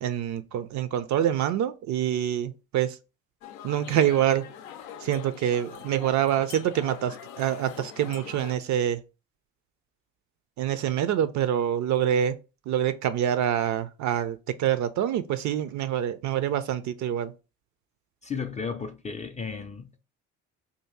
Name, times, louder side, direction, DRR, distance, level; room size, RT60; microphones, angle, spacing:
voice 1, 0.0-3.0 3.6-4.5 5.0-9.0 10.6-12.4 12.7-17.3, right 10 dB, 45° right, 0.5 m, -26 dB
sound 1, 3.4-8.6, left 9 dB, 80° left, 0.5 m, -43 dB
voice 2, 18.2-20.0, left 5 dB, 20° left, 0.4 m, -34 dB
2.8 x 2.5 x 3.5 m
hypercardioid pair, 55°, 39 cm